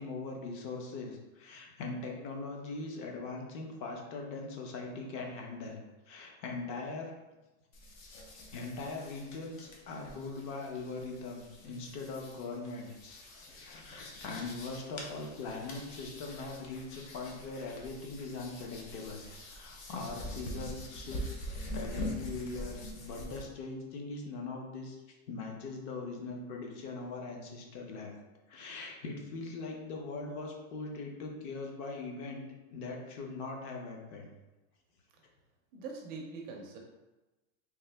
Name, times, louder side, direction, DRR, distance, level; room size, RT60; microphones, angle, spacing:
voice 1, 0.0-7.1 8.5-21.3 21.7-25.0 25.3-28.1 28.5-32.4 32.7-34.3, left 3 dB, 40° left, 1 dB, 0.7 m, -41 dB
sound 1, 7.7-23.4, left 1 dB, 70° left, 1.0 m, -44 dB
voice 2, 35.7-36.8, right 4 dB, 25° right, 0 dB, 0.4 m, -43 dB
3.5 x 2.8 x 3.3 m, 1.1 s
supercardioid pair, 155°, 41 cm